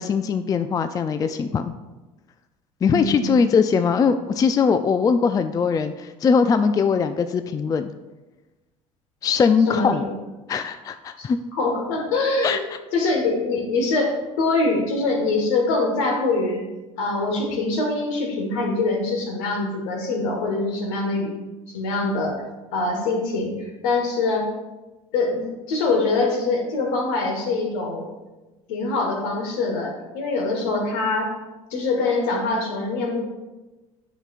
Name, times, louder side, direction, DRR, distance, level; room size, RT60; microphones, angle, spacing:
voice 1, 0.0-1.7 2.8-7.9 9.2-10.0 10.5-11.4 12.4-12.6, left 5 dB, 20° left, 9 dB, 0.3 m, -21 dB
voice 2, 2.8-3.3 9.7-10.1 11.2-11.3 11.5-12.6 12.9-16.6 17.0-21.3 21.7-22.4 22.7-24.5 25.1-28.1 28.7-31.3 31.7-33.2, left 3 dB, 65° left, 2 dB, 1.5 m, -24 dB
9.7 x 5.8 x 2.5 m, 1.1 s
figure-of-eight pair, 65°, 17 cm